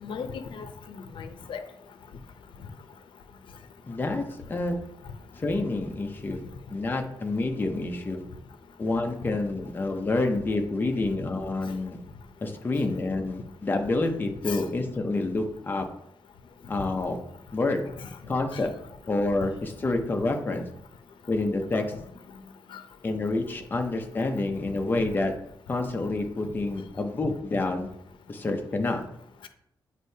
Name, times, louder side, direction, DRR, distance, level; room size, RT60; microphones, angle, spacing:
voice 1, 0.0-1.6 14.5-14.6 18.5-18.6 22.7-22.8, left 6 dB, 85° left, 8 dB, 0.6 m, -37 dB
voice 2, 3.9-4.2 4.5-4.7 5.4-6.4 6.7-8.2 8.8-12.0 12.4-15.9 16.7-17.2 17.5-17.8 18.3-18.7 19.1-20.7 21.3-21.8 23.0-25.3 25.7-27.9 28.3-29.0, left 2 dB, 25° left, 3 dB, 0.7 m, -28 dB
8.2 x 4.4 x 2.8 m, 0.76 s
wide cardioid pair, 165°, 8 cm